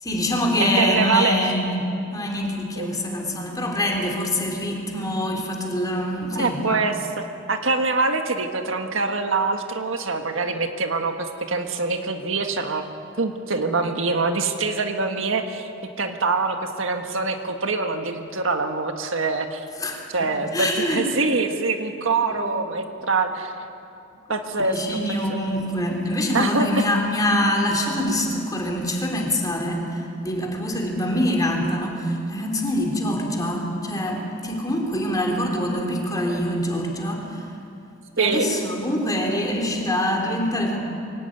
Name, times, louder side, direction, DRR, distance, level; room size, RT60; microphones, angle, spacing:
voice 1, 0.0-6.6 19.8-21.0 22.3-22.5 24.5-37.5 38.2-40.8, left 1 dB, 20° left, 0 dB, 3.6 m, -25 dB
voice 2, 0.6-1.4 2.8-2.9 6.3-7.0 7.5-12.9 13.2-15.7 16.0-19.7 20.1-23.6 24.3-24.7 25.3-25.4 26.3-26.8 38.2-38.5, right 3 dB, 75° right, 5 dB, 1.6 m, -24 dB
23.5 x 17.5 x 9.2 m, 2.6 s
head